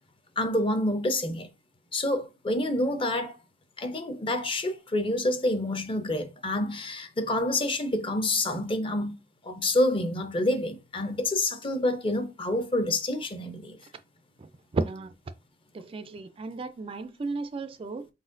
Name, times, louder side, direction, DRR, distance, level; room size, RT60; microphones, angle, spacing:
voice 1, 0.4-1.5 1.9-3.4 3.8-9.1 9.4-13.8, left 1 dB, 30° left, 0.6 m, -28 dB
voice 2, 14.4-15.1 15.7-18.1, right 3 dB, 30° right, 0.3 m, -34 dB
4.3 x 4.0 x 2.5 m
head